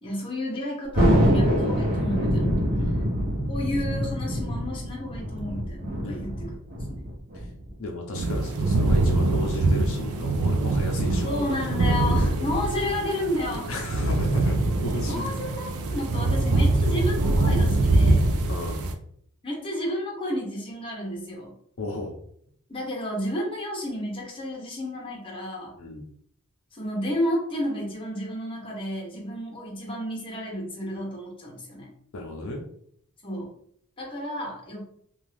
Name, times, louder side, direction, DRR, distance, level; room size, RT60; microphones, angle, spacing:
voice 1, 0.0-2.5 3.5-6.5 6.9-7.0 11.2-13.7 15.1-15.7 15.9-18.3 19.4-21.5 22.7-25.7 26.7-31.9 33.2-33.5 34.0-34.8, left 1 dB, 25° left, -3 dB, 0.8 m, -31 dB
Thunder, 0.9-7.8, equal, 45° right, 0.8 m, -25 dB
voice 2, 2.8-3.1 6.0-6.3 7.3-7.5 7.8-11.6 11.9-12.2 13.7-15.4 18.5-18.8 21.8-22.2 25.8-26.0 32.1-32.6, left 1 dB, 65° left, 1 dB, 0.5 m, -33 dB
sound 1, 8.1-18.9, right 2 dB, 65° right, 0.4 m, -23 dB
2.6 x 2.3 x 3.2 m, 0.66 s
head